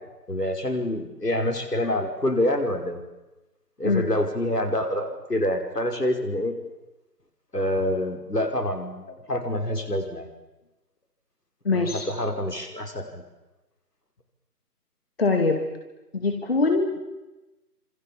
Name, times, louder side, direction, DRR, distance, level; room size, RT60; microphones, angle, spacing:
voice 1, 0.3-3.0 3.8-6.5 7.5-10.3 11.7-13.2, left 1 dB, 75° left, 4 dB, 5.6 m, -26 dB
voice 2, 11.6-12.1 15.2-15.6 16.1-17.0, left 3 dB, 40° left, 4 dB, 2.5 m, -23 dB
27.0 x 26.5 x 7.4 m, 1.1 s
figure-of-eight pair, 160°, 48 cm